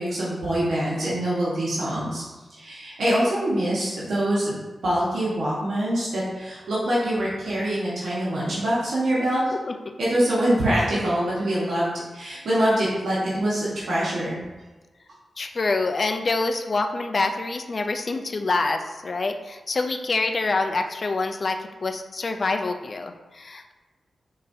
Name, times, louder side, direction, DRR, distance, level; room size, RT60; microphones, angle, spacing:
voice 1, 0.0-2.2 2.6-4.6 4.8-9.4 10.0-14.4, right 1 dB, 85° right, -8 dB, 1.3 m, -24 dB
voice 2, 9.5-9.9 15.4-23.7, left 3 dB, 50° left, 6 dB, 0.4 m, -26 dB
5.3 x 3.8 x 2.7 m, 1.2 s
cardioid pair, 60°, 0 cm